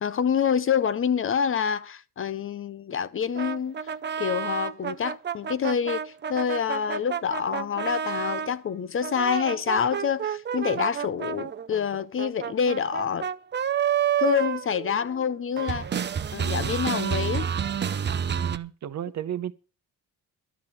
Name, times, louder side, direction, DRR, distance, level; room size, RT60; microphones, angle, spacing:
voice 1, 0.0-3.8 4.2-13.3 14.2-17.5, left 7 dB, 35° left, 0.6 m, -27 dB
sound 1, 3.4-8.5 9.0-15.3 15.6-18.6, right 8 dB, 30° right, 0.6 m, -29 dB
voice 2, 18.4-19.5, right 10 dB, 50° right, 0.9 m, -33 dB
12.5 x 5.9 x 8.9 m
cardioid pair, 150°, 35 cm